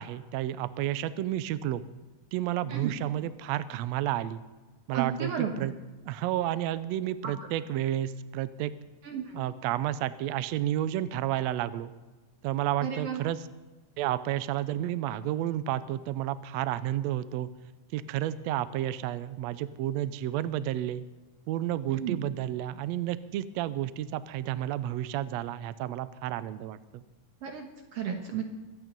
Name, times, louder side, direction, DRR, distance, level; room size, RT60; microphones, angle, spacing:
voice 1, 0.0-1.8 2.3-4.4 4.9-5.7 6.1-8.7 9.3-11.9 12.4-13.4 14.0-17.5 17.9-21.0 21.5-27.0, right 12 dB, 80° right, 14 dB, 1.5 m, -31 dB
voice 2, 4.9-5.7 9.0-9.4 12.8-13.2 21.9-22.2 27.4-28.4, right 8 dB, 60° right, 4 dB, 1.9 m, -33 dB
24.0 x 8.9 x 5.3 m, 1.2 s
omnidirectional pair, 3.8 m